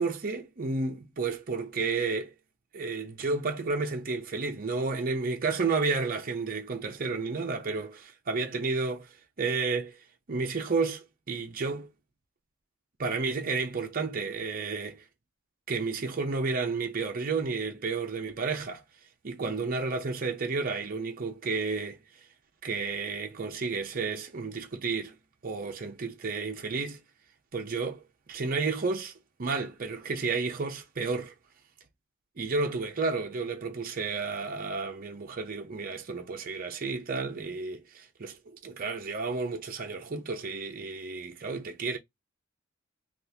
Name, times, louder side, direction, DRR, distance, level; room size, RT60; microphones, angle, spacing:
voice 1, 0.0-2.3 2.7-9.1 9.4-10.0 10.3-11.9 13.0-15.0 15.7-18.8 19.2-22.0 22.6-25.1 25.4-27.0 27.5-28.0 28.3-29.1 29.4-31.3 32.4-42.0, right 4 dB, 45° right, 0.7 m, -31 dB
3.5 x 2.4 x 2.7 m
head